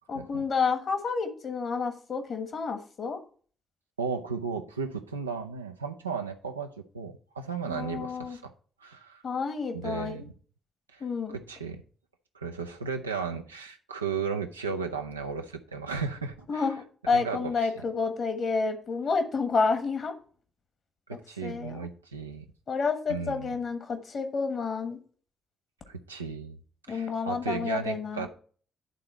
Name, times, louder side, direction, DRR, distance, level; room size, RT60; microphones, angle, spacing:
voice 1, 0.1-3.2 7.7-8.4 9.2-10.2 11.0-11.4 16.5-20.1 21.4-21.8 22.7-25.0 26.9-28.3, left 4 dB, 50° left, 7 dB, 1.3 m, -29 dB
voice 2, 4.0-8.5 8.8-9.2 9.7-10.2 10.9-11.8 12.3-16.7 17.1-17.8 21.1-22.4 23.1-23.5 25.9-26.6 26.9-28.3, right 5 dB, 85° right, 4 dB, 0.5 m, -35 dB
10.5 x 3.8 x 4.3 m, 0.44 s
figure-of-eight pair, 40°, 0 cm